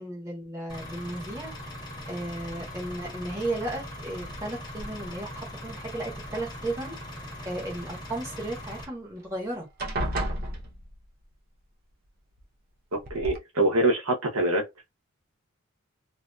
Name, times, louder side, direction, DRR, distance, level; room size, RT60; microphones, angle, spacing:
voice 1, 0.0-1.5 2.1-7.0 7.4-9.7, right 1 dB, 15° right, 1.0 m, -34 dB
Engine, 0.7-8.8, left 1 dB, 20° left, 0.9 m, -40 dB
sound 1, 4.8-5.4 6.2-7.0 8.8-8.9 9.2-9.5 9.8-11.2 12.4-12.5 13.0-13.4, right 1 dB, 45° right, 0.6 m, -33 dB
voice 2, 12.9-14.6, right 1 dB, 80° right, 0.8 m, -24 dB
2.6 x 2.5 x 2.2 m
head